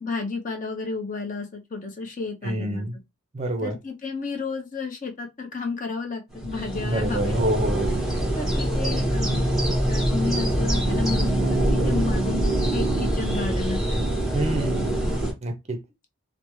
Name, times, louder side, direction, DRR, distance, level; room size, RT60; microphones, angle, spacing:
voice 1, 0.0-2.9 3.6-7.6 8.3-9.5 9.9-14.1, left 4 dB, 35° left, 0.7 m, -32 dB
voice 2, 2.4-3.0 3.3-3.8 6.8-8.0 14.3-14.8 15.4-15.8, right 1 dB, 30° right, 0.5 m, -27 dB
sound 1, 6.3-15.3, right 1 dB, ahead, 1.5 m, -24 dB
3.3 x 2.1 x 3.0 m
head